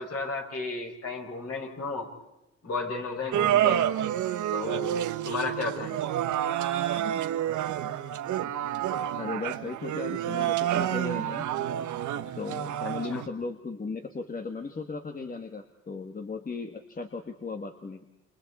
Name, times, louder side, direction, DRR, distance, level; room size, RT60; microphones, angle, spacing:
voice 1, 0.0-2.1 2.6-3.8 4.5-6.0 13.1-13.2, left 3 dB, 50° left, 1 dB, 6.5 m, -33 dB
sound 1, 3.3-13.3, right 11 dB, 75° right, 1.4 m, -29 dB
voice 2, 9.2-11.5 12.4-18.0, left 4 dB, 30° left, 5 dB, 1.9 m, -36 dB
29.0 x 28.0 x 4.4 m, 0.94 s
cardioid pair, 90°, 30 cm